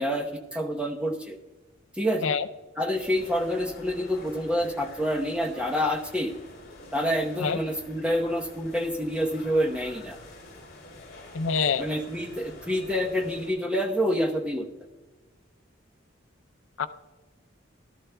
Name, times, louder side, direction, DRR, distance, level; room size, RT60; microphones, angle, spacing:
voice 1, 0.0-1.4 1.9-2.3 2.8-6.3 6.9-10.2 11.8-14.7, equal, 5° right, 1 dB, 0.9 m, -27 dB
sound 1, 2.9-13.5, left 2 dB, 50° left, 4.1 m, -47 dB
voice 2, 11.3-11.8 16.8-16.9, left 5 dB, 80° left, 10 dB, 0.5 m, -25 dB
18.0 x 12.5 x 2.3 m, 1.2 s
head